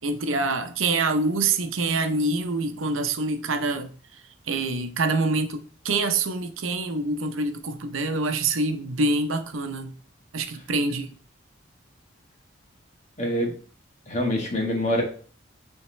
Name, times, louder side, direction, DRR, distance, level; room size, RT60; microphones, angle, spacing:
voice 1, 0.0-3.9 4.5-9.9 10.3-11.1, right 3 dB, 85° right, 0.8 m, -26 dB
voice 2, 13.2-13.5 14.1-15.0, equal, 35° left, 1.7 m, -25 dB
8.8 x 3.6 x 3.2 m
head